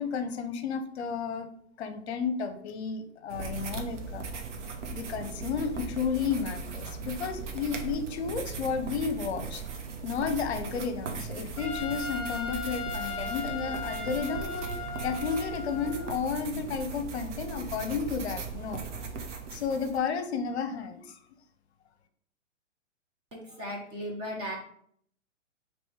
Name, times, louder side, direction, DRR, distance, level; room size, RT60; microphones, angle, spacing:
voice 1, 0.0-1.5 1.8-4.2 4.9-9.6 10.0-14.7 15.0-18.8 19.5-21.2, left 6 dB, 55° left, 8 dB, 0.7 m, -32 dB
sound 1, 3.3-20.0, right 5 dB, 65° right, 0.9 m, -38 dB
Trumpet, 11.6-16.2, left 4 dB, 5° left, 1.2 m, -37 dB
voice 2, 23.3-24.6, equal, 15° right, -2 dB, 0.5 m, -36 dB
3.1 x 3.1 x 4.5 m, 0.65 s
hypercardioid pair, 125°, 38 cm